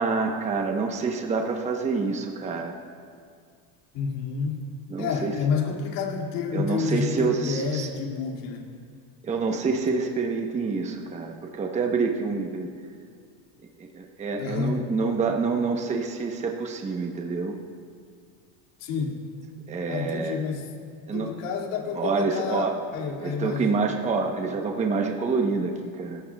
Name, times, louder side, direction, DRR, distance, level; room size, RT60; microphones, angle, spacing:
voice 1, 0.0-2.7 4.9-5.3 6.5-7.9 9.2-12.7 13.8-17.6 19.7-20.4 21.1-21.3 22.0-22.7 23.2-26.2, right 4 dB, 15° right, 2 dB, 0.9 m, -27 dB
voice 2, 3.9-4.6 5.0-8.6 14.4-14.8 18.8-19.2 19.9-20.7 21.1-23.7, left 5 dB, 70° left, 0 dB, 2.4 m, -29 dB
26.0 x 14.0 x 2.3 m, 2.1 s
supercardioid pair, 135°, 39 cm